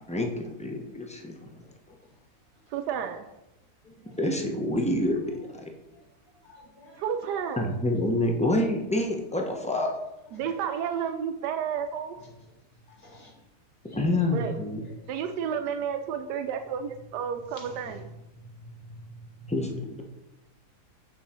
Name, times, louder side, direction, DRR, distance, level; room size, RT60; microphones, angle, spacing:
voice 1, 0.1-1.3 1.9-2.0 4.0-5.7 7.6-10.0 13.9-14.8 19.5-19.7, left 1 dB, 10° left, 1 dB, 0.5 m, -27 dB
voice 2, 2.7-3.2 7.0-7.6 10.3-12.1 14.3-14.5 15.1-18.0, right 7 dB, 90° right, 7 dB, 1.2 m, -31 dB
voice 3, 3.8-4.2 5.9-6.0 6.4-7.6 10.3-11.0 12.1-12.6 12.9-13.4 13.8-15.7 17.5-19.5, equal, 30° left, -1 dB, 1.8 m, -50 dB
8.1 x 4.6 x 4.3 m, 0.94 s
omnidirectional pair, 1.7 m